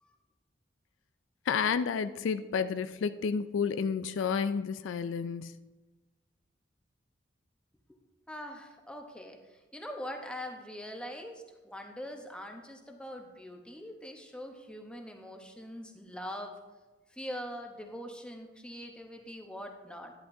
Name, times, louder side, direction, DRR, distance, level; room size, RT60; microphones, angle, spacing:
voice 1, 1.5-5.5, left 6 dB, 80° left, 12 dB, 0.4 m, -30 dB
voice 2, 8.3-16.5 17.1-20.1, equal, 5° left, 3 dB, 0.9 m, -43 dB
11.0 x 9.9 x 2.7 m, 1.1 s
head